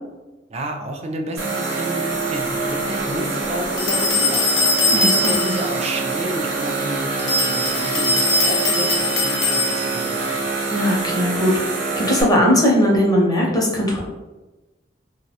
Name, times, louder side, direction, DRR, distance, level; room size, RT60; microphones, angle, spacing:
voice 1, 0.5-4.5 4.9-10.2, right 1 dB, 35° right, 2 dB, 0.3 m, -30 dB
sound 1, 1.4-12.2, right 3 dB, 75° right, 0.7 m, -25 dB
sound 2, 3.8-5.7 7.2-10.1, left 3 dB, 90° left, 0.5 m, -21 dB
voice 2, 10.7-11.5 12.0-14.0, equal, 20° left, -2 dB, 0.5 m, -18 dB
2.6 x 2.0 x 2.8 m, 1.1 s
head